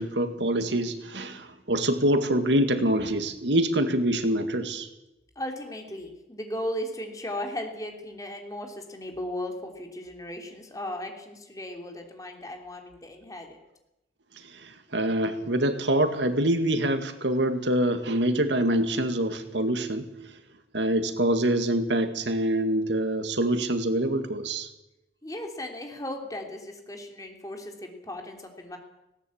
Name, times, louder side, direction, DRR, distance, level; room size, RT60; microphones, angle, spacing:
voice 1, 0.0-4.9 14.4-20.1 20.7-24.7, right 1 dB, 90° right, 9 dB, 2.0 m, -25 dB
voice 2, 5.3-13.6 25.2-28.8, left 1 dB, 20° left, 3 dB, 3.2 m, -36 dB
19.0 x 17.5 x 8.6 m, 0.93 s
head